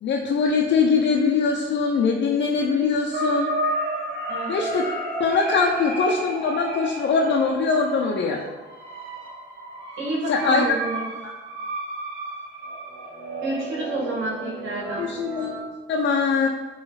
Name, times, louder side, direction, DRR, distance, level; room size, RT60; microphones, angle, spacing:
voice 1, 0.0-3.5 4.5-4.9 5.2-8.4 10.3-10.7 15.0-16.5, left 4 dB, 65° left, -1 dB, 0.7 m, -22 dB
sound 1, 3.1-15.6, right 1 dB, 90° right, 1.4 m, -32 dB
voice 2, 10.0-11.1 13.4-15.1, right 1 dB, 70° right, -3 dB, 2.1 m, -29 dB
8.7 x 3.3 x 4.0 m, 1.3 s
cardioid pair, 90°, 20 cm